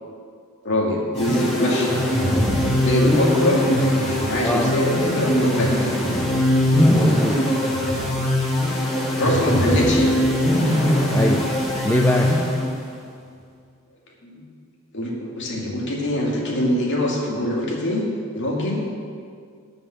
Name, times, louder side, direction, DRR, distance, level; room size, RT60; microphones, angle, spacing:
voice 1, 0.6-2.0 2.6-6.0 9.2-10.2 14.2-14.4 14.9-18.0 18.3-18.8, left 1 dB, 55° left, -3 dB, 2.2 m, -23 dB
sound 1, 1.1-12.9, left 1 dB, 30° left, 2.8 m, -21 dB
voice 2, 4.4-4.7 6.9-7.4 11.1-11.5 11.8-12.3, left 1 dB, 10° left, 1 dB, 0.5 m, -23 dB
12.5 x 5.6 x 8.6 m, 2.2 s
head